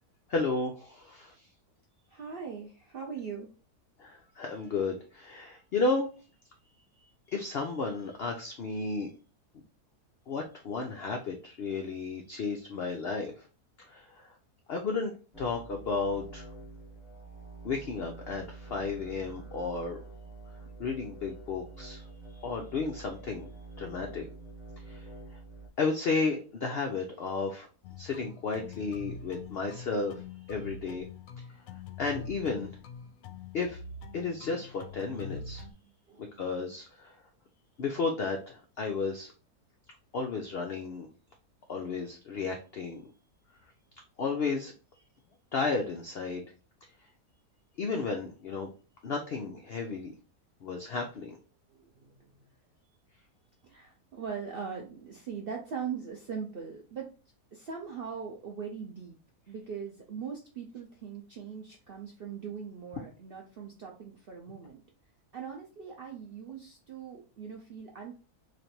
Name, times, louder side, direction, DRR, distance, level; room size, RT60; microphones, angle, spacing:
voice 1, 0.3-1.5 4.0-6.1 7.3-9.1 10.3-13.5 13.8-14.3 14.7-16.5 17.6-20.0 20.8-22.1 22.4-23.5 23.8-24.3 24.9-25.1 25.8-27.7 28.0-30.2 30.5-31.0 32.0-32.7 33.5-33.8 34.1-35.6 36.4-37.2 37.8-39.3 40.1-41.1 41.7-43.1 44.2-44.7 45.5-46.5 47.8-48.7 49.0-50.1 50.6-51.4, left 4 dB, 85° left, 3 dB, 0.5 m, -33 dB
voice 2, 2.1-3.5 35.8-36.7 51.7-52.6 53.6-57.1 57.5-59.2 59.5-64.8 65.3-68.2, right 6 dB, 70° right, 0 dB, 0.5 m, -41 dB
sound 1, 15.3-25.7, right 3 dB, ahead, 0.4 m, -47 dB
sound 2, 27.8-35.7, left 4 dB, 70° left, 0.9 m, -44 dB
3.2 x 2.5 x 4.2 m, 0.36 s
omnidirectional pair, 1.7 m